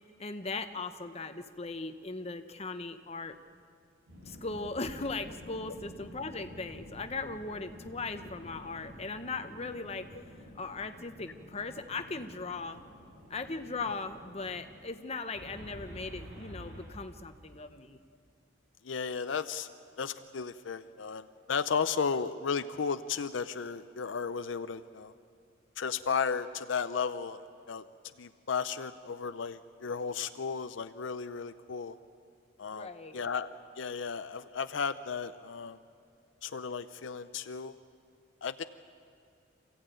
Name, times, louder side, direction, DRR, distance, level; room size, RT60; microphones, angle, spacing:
voice 1, 0.2-3.4 4.3-10.1 10.5-12.8 13.3-18.0 32.7-33.2, left 3 dB, 30° left, 8 dB, 1.0 m, -38 dB
sound 1, 4.1-14.7 15.3-16.9, equal, 65° right, 7.8 m, -50 dB
voice 2, 18.8-19.7 20.0-25.1 25.8-27.4 27.7-27.8 28.2-32.0 32.6-35.8 36.4-37.8 38.4-38.6, left 6 dB, 75° left, 11 dB, 0.5 m, -34 dB
26.5 x 15.5 x 9.1 m, 2.4 s
head